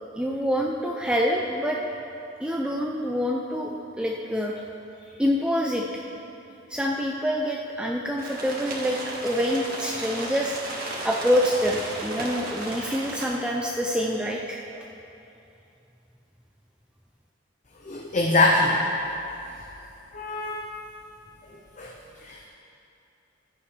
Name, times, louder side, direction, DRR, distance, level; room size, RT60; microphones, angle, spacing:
voice 1, 0.1-1.8 2.4-4.5 5.2-5.9 6.7-9.0 9.2-14.9, equal, 5° right, -1 dB, 0.5 m, -26 dB
sound 1, 8.2-13.3, right 2 dB, 55° right, 1.5 m, -34 dB
voice 2, 17.8-18.8 20.1-20.6 21.8-21.9 22.2-22.5, left 2 dB, 40° left, -2 dB, 0.8 m, -23 dB
14.5 x 8.6 x 3.3 m, 2.8 s
head